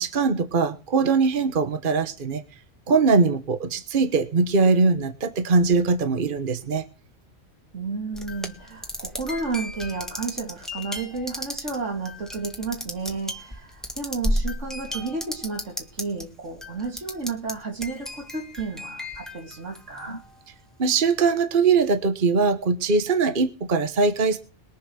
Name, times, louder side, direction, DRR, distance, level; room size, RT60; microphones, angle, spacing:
voice 1, 0.0-2.4 2.9-6.9 20.1-20.2 20.8-24.4, right 4 dB, 45° right, 1.3 m, -21 dB
voice 2, 7.7-20.2, right 4 dB, 80° right, 2.9 m, -32 dB
sound 1, 8.1-16.2 16.6-17.5 17.8-20.2, left 1 dB, ahead, 1.7 m, -33 dB
21.0 x 7.3 x 6.3 m
omnidirectional pair, 1.2 m